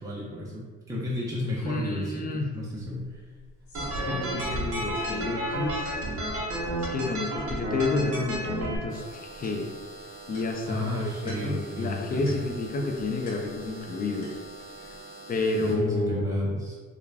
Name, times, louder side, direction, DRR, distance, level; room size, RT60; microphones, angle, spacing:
voice 1, 0.0-3.2 10.7-12.4 15.6-16.7, left 1 dB, 10° right, -7 dB, 0.6 m, -32 dB
voice 2, 1.6-2.5 3.9-6.0 6.8-9.7 10.3-14.4 15.3-16.6, left 3 dB, 30° left, 2 dB, 0.4 m, -30 dB
sound 1, 2.7-2.8 3.1-4.7 4.9-5.4 5.9-6.0 6.3-7.0 8.1-8.4 8.7-13.9 14.2-15.0, equal, 75° left, 1.1 m, -43 dB
sound 2, 3.7-8.8, right 1 dB, 50° right, 0.7 m, -31 dB
sound 3, 8.9-15.8, right 2 dB, 45° left, 1.0 m, -45 dB
2.4 x 2.2 x 3.2 m, 1.4 s
cardioid pair, 90°, 30 cm